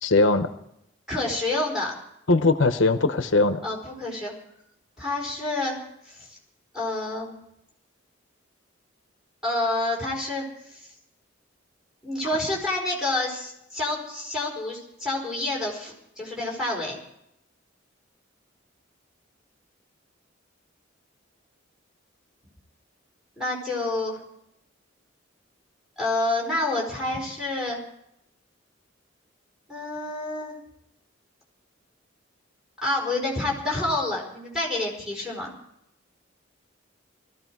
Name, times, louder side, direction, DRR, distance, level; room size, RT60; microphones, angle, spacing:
voice 1, 0.0-0.5 2.3-3.6, left 3 dB, 75° left, 9 dB, 0.9 m, -20 dB
voice 2, 1.1-1.9 3.6-4.3 5.0-5.8 6.1-6.4 6.7-7.4 9.4-10.4 10.7-10.9 12.0-17.0 23.4-24.2 26.0-27.8 29.7-30.6 32.8-35.5, left 2 dB, 5° right, -3 dB, 4.8 m, -28 dB
20.0 x 14.5 x 4.7 m, 0.79 s
head